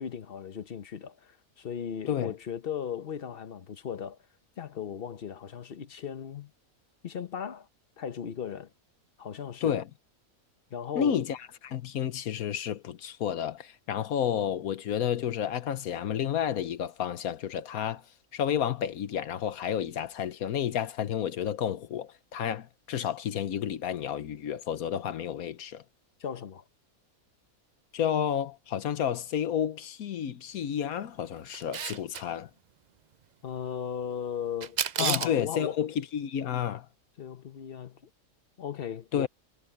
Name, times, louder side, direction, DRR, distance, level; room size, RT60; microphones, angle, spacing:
voice 1, 0.0-4.2 4.6-6.5 7.0-7.7 8.0-8.7 9.2-9.7 10.7-11.2 26.2-26.6 33.4-35.8 37.2-38.1 38.6-39.3, left 8 dB, 45° left, 1.0 m, -37 dB
voice 2, 10.9-11.4 11.6-18.0 18.3-25.8 27.9-32.5 35.0-36.9 39.1-39.3, left 9 dB, 80° left, 1.3 m, -31 dB
Camera, 31.5-32.2 34.6-35.4, right 8 dB, 70° right, 0.4 m, -30 dB
omnidirectional pair, 1.5 m